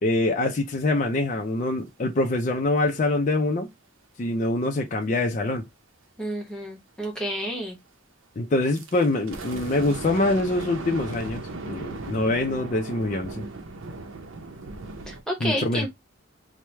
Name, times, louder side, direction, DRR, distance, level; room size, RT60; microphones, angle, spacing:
voice 1, 0.0-3.7 4.2-5.6 8.4-13.4 15.4-15.9, left 2 dB, 35° left, 0.4 m, -24 dB
voice 2, 6.2-7.8 15.1-15.9, equal, 5° left, 1.0 m, -30 dB
sound 1, 8.7-15.2, right 3 dB, 70° right, 0.7 m, -37 dB
4.6 x 2.1 x 3.2 m
head